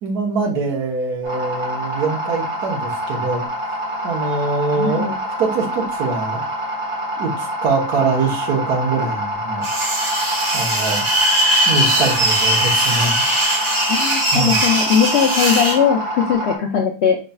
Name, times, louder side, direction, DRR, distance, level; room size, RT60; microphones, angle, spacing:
voice 1, 0.0-3.4 4.0-6.5 7.2-9.7 10.5-11.0 11.7-13.2 14.3-14.6, right 4 dB, 75° right, 0 dB, 1.6 m, -23 dB
sound 1, 1.2-16.6, equal, 35° right, 1.5 m, -26 dB
voice 2, 4.8-5.2 13.9-17.2, left 7 dB, 65° left, 2 dB, 0.6 m, -19 dB
sound 2, 9.6-15.8, right 1 dB, 20° right, 1.1 m, -19 dB
5.3 x 3.9 x 2.3 m, 0.36 s
omnidirectional pair, 1.7 m